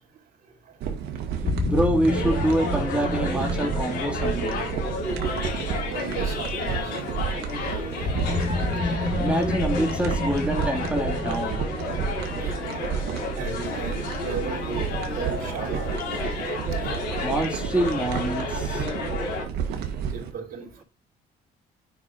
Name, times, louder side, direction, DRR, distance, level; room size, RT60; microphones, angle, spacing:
sound 1, 0.8-20.3, right 7 dB, 75° right, 1.6 m, -31 dB
sound 2, 1.4-6.4 8.0-13.7, left 3 dB, 40° left, 2.0 m, -31 dB
voice 1, 1.7-4.6 9.2-11.7 16.6-16.7 17.1-18.9, right 1 dB, 5° right, 1.9 m, -26 dB
sound 3, 2.1-19.4, left 3 dB, 90° left, 3.9 m, -32 dB
voice 2, 5.9-7.1 7.6-8.5 12.5-12.6 13.3-16.0 16.7-17.0 20.1-20.8, right 5 dB, 55° right, 2.9 m, -36 dB
9.8 x 5.7 x 2.5 m
cardioid pair, 110°, 17 cm